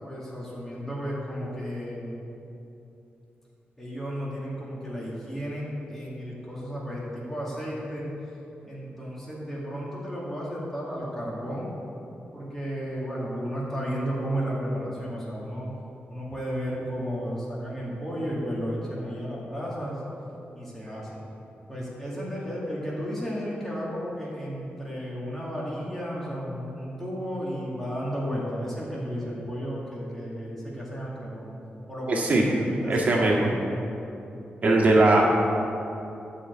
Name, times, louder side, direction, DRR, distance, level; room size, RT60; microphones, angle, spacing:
voice 1, 0.0-2.2 3.8-8.1 8.7-11.7 12.3-15.7 16.1-20.0 20.5-21.1 21.7-31.5 31.9-33.7, equal, 10° left, -6 dB, 2.2 m, -33 dB
voice 2, 32.1-32.4 32.9-33.5 34.6-35.2, right 2 dB, 45° right, -2 dB, 1.8 m, -20 dB
12.0 x 5.0 x 8.0 m, 2.9 s
wide cardioid pair, 160°, 4 cm